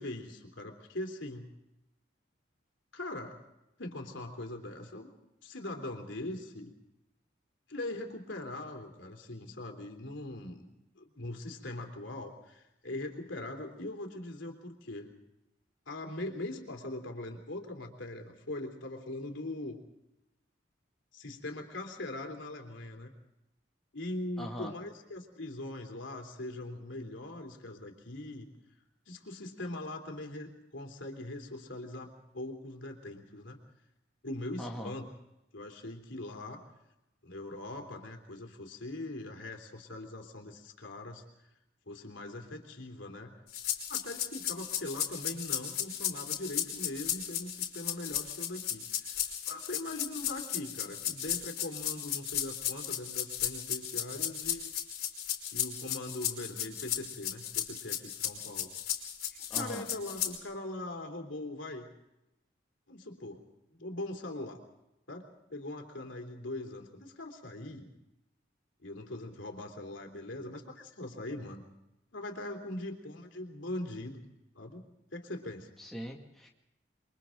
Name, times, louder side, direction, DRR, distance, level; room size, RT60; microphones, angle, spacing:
voice 1, 0.0-1.5 2.9-3.4 3.8-5.1 5.4-6.7 7.7-10.7 11.0-15.1 15.9-19.8 21.1-23.1 23.9-28.5 29.1-33.6 34.2-35.1 35.5-36.6 37.2-41.2 41.9-43.3 43.9-54.7 55.5-58.7 59.5-61.9 62.9-63.4 63.7-64.6 65.1-65.2 65.5-67.9 68.8-71.6 72.1-74.2 74.5-74.8 75.1-75.7, left 1 dB, 80° left, 4 dB, 3.3 m, -41 dB
voice 2, 24.4-24.7 34.6-34.9 59.5-59.8 75.8-76.5, equal, ahead, -2 dB, 2.2 m, -40 dB
sound 1, 43.5-60.4, left 10 dB, 50° left, 3.8 m, -35 dB
29.0 x 23.5 x 3.9 m, 0.89 s
head